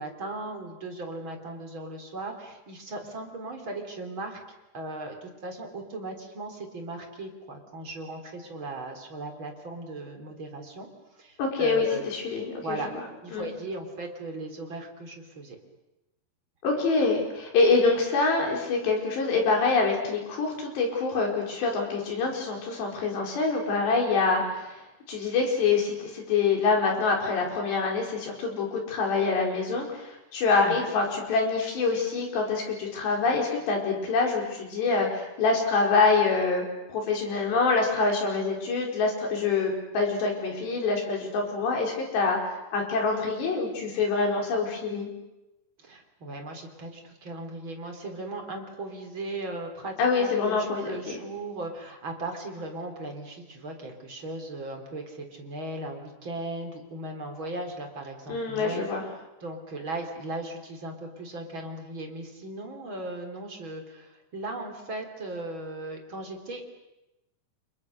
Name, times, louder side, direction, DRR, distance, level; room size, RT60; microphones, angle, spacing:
voice 1, 0.0-4.4 4.7-10.9 11.1-12.0 12.6-12.9 13.2-15.6 30.6-30.9 45.8-66.7, right 2 dB, 30° right, 3 dB, 4.1 m, -37 dB
voice 2, 11.4-13.0 13.3-13.5 16.6-24.8 25.1-36.6 36.9-42.4 42.7-45.1 50.0-51.2 58.3-59.0, left 4 dB, 85° left, 1 dB, 7.1 m, -25 dB
29.5 x 28.0 x 6.6 m, 0.96 s
omnidirectional pair, 4.8 m